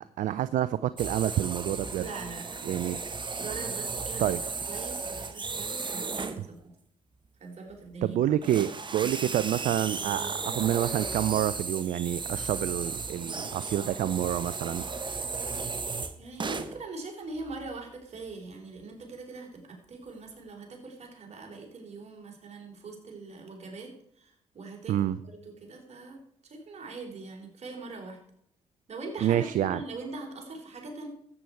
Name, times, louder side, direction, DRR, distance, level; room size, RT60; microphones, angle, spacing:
voice 1, 0.2-2.1 2.7-3.0 4.2-4.4 8.0-14.8 24.9-25.2 29.2-29.8, right 12 dB, 65° right, 16 dB, 0.4 m, -28 dB
sound 1, 1.0-6.4 7.7-7.9 8.4-16.8 17.4-17.7 18.3-18.4 18.8-18.9, right 4 dB, 35° right, 1.2 m, -35 dB
voice 2, 2.0-2.6 3.4-6.6 7.4-8.2 16.2-25.1 25.3-28.2 28.9-31.1, right 3 dB, 50° right, 2 dB, 3.5 m, -42 dB
13.0 x 8.4 x 4.6 m, 0.69 s
hypercardioid pair, 50°, 14 cm